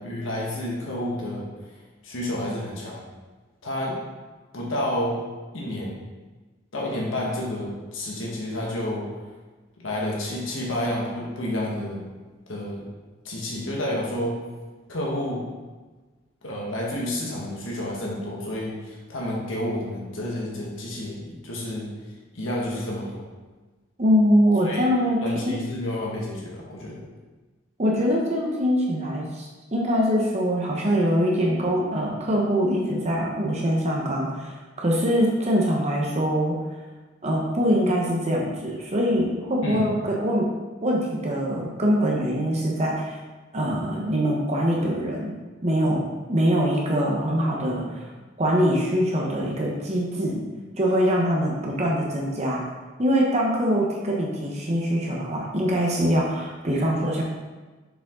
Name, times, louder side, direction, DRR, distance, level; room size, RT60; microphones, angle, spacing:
voice 1, 0.0-1.4 2.0-3.1 3.6-4.0 4.5-5.2 5.5-6.0 6.7-9.1 9.8-12.0 12.5-12.8 13.2-14.4 14.9-15.5 16.4-21.9 22.3-23.3 24.6-24.9 25.2-27.0 39.6-39.9, left 1 dB, 90° left, -4 dB, 1.5 m, -30 dB
voice 2, 24.0-25.2 27.8-36.6 37.2-40.5 40.8-43.2 43.5-45.3 45.6-46.0 46.3-48.1 48.4-50.4 50.8-52.6 53.0-57.2, equal, 35° right, -2 dB, 1.0 m, -23 dB
6.9 x 5.0 x 3.8 m, 1.3 s
head